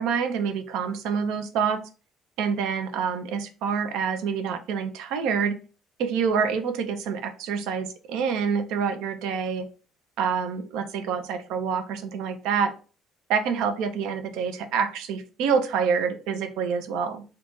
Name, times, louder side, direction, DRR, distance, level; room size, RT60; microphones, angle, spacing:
voice 1, 0.0-1.8 2.4-5.6 6.0-9.7 10.2-12.7 13.3-17.2, right 6 dB, 65° right, 8 dB, 0.4 m, -27 dB
2.5 x 2.2 x 3.0 m, 0.36 s
figure-of-eight pair, 50°, 0 cm